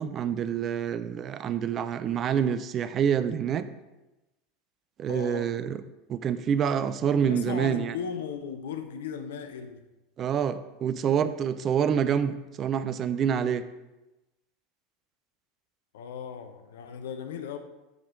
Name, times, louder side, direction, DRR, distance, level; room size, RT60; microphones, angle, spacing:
voice 1, 0.0-3.7 5.0-5.8 6.1-8.0 10.2-13.6, right 8 dB, 40° right, 0.6 m, -27 dB
voice 2, 5.1-5.5 7.2-9.8 15.9-17.6, left 7 dB, 70° left, 0.9 m, -36 dB
13.5 x 5.0 x 3.8 m
hypercardioid pair, 80°, 0 cm